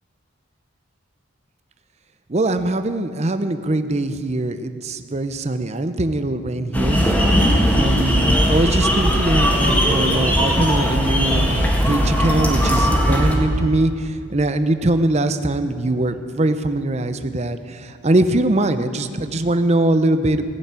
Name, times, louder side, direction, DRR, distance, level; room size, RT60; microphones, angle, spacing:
voice 1, 2.3-7.0 7.7-20.4, right 2 dB, 30° right, 10 dB, 0.6 m, -22 dB
sound 1, 6.7-13.4, equal, 10° left, 1.8 m, -18 dB
16.5 x 7.1 x 9.6 m, 2.2 s
head